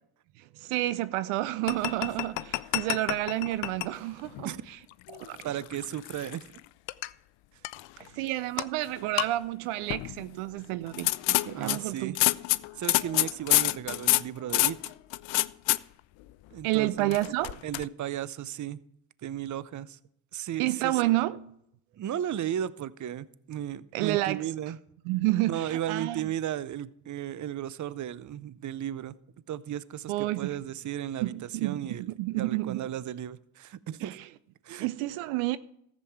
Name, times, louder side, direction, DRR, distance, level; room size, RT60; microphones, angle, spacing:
voice 1, 0.4-4.8 5.1-5.6 8.0-12.2 16.6-17.6 20.6-21.4 23.9-24.5 25.0-26.3 30.1-30.6 31.2-32.9 34.0-34.2 34.8-35.6, right 17 dB, 80° right, 0.6 m, -30 dB
sound 1, 1.7-3.9 4.2-4.5 5.1-6.6 6.9-7.1 7.6-8.1 8.6-8.7 9.0-9.3 9.9-10.2 10.9-15.8 17.1-17.8, left 19 dB, 65° left, 0.5 m, -28 dB
voice 2, 5.4-6.6 11.5-12.2 12.8-14.8 16.5-17.2 17.6-18.8 19.2-20.0 20.3-21.0 22.0-24.8 25.5-29.1 29.5-31.3 31.6-32.1 32.4-34.2 34.6-34.9, right 11 dB, 35° right, 0.6 m, -35 dB
14.0 x 7.6 x 4.5 m
hypercardioid pair, 45°, 50 cm